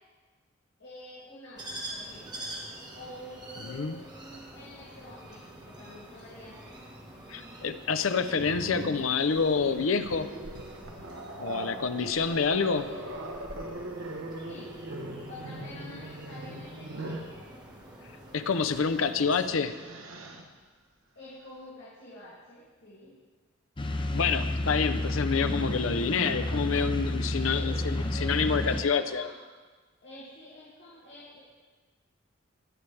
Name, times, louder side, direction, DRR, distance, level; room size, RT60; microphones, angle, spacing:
voice 1, 0.8-2.4 2.9-6.8 12.4-13.1 14.4-14.8 15.3-17.5 21.1-23.2 27.3-27.8 28.1-29.3 30.0-31.4, left 1 dB, 60° left, -8 dB, 2.6 m, -47 dB
sound 1, 1.6-19.5, right 1 dB, 20° right, 1.6 m, -46 dB
voice 2, 7.3-10.3 11.4-12.8 18.3-19.8 24.1-29.3, left 5 dB, 80° left, 11 dB, 0.6 m, -27 dB
Growling, 8.3-17.3 18.7-18.9 19.3-20.4, right 1 dB, 75° right, 1.1 m, -40 dB
sound 2, 23.8-28.8, left 1 dB, 25° left, 0.7 m, -30 dB
21.0 x 7.0 x 3.4 m, 1.4 s
head